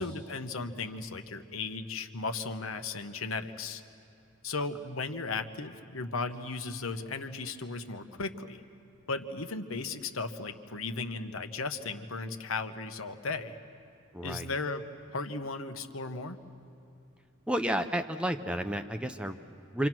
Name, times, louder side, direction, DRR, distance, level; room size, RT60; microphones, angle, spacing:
voice 1, 0.0-3.8 4.4-8.6 9.1-13.6 14.2-16.4, left 3 dB, 85° left, 7 dB, 1.1 m, -36 dB
voice 2, 14.1-14.5 17.5-19.9, right 1 dB, 5° right, 8 dB, 0.6 m, -31 dB
28.5 x 26.0 x 6.1 m, 2.7 s
head